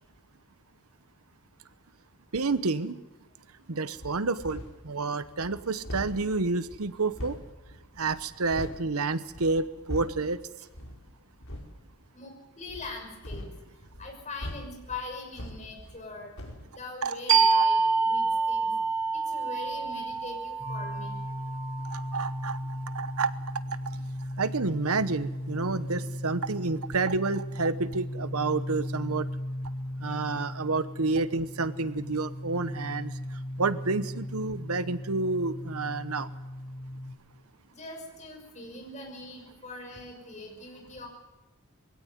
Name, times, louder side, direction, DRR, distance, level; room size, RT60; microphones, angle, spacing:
voice 1, 2.3-3.0 3.7-7.4 8.0-10.4 17.0-17.2 21.9-23.3 23.7-24.0 24.4-29.3 30.0-33.1 33.6-36.3, right 3 dB, 85° right, 14 dB, 1.0 m, -29 dB
sound 1, 3.9-4.9 5.2-8.9 9.2-10.3 10.7-11.1 11.4-11.8 12.6-16.1 16.4-16.7, equal, 70° left, 4.4 m, -41 dB
voice 2, 12.1-13.5 14.0-16.3 16.7-18.7 19.1-21.3 37.7-41.1, left 3 dB, 35° left, 2 dB, 6.1 m, -41 dB
sound 2, 17.3-22.6, right 4 dB, 60° right, 3.1 m, -27 dB
sound 3, 20.6-37.1, left 1 dB, 35° right, 7.1 m, -37 dB
22.5 x 17.0 x 9.5 m, 1.0 s
head